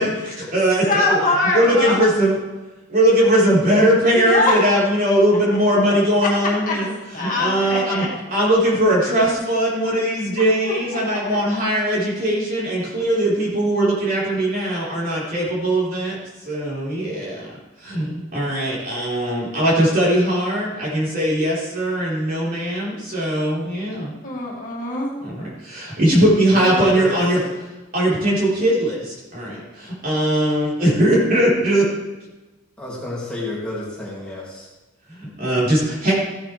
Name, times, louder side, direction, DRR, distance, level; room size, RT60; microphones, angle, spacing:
voice 1, 0.0-1.2 1.5-2.4 2.9-8.0 8.3-17.5 17.8-24.1 25.2-27.4 27.9-31.9 35.1-36.1, right 1 dB, 45° right, -6 dB, 4.1 m, -20 dB
voice 2, 0.8-2.0 4.1-4.6 6.7-6.8 7.1-8.1 10.6-10.8 11.1-11.4 24.2-25.2, left 2 dB, 40° left, -3 dB, 2.1 m, -22 dB
voice 3, 26.5-27.4 32.8-34.7, left 2 dB, 5° left, -6 dB, 2.6 m, -29 dB
15.0 x 8.9 x 3.4 m, 1.1 s
head